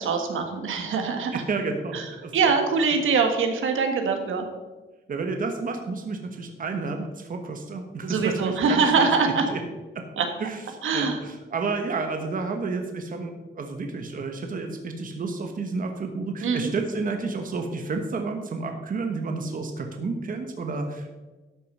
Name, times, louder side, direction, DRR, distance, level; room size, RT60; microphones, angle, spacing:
voice 1, 0.0-1.4 1.9-2.0 2.3-4.4 8.0-9.4 10.2-10.3 10.8-11.2 16.4-16.7, right 5 dB, 85° right, 5 dB, 1.7 m, -23 dB
voice 2, 1.3-2.5 5.1-9.6 9.9-10.0 10.4-10.6 10.9-21.1, right 3 dB, 45° right, 4 dB, 1.2 m, -31 dB
12.0 x 6.6 x 5.5 m, 1.2 s
wide cardioid pair, 150°, 20 cm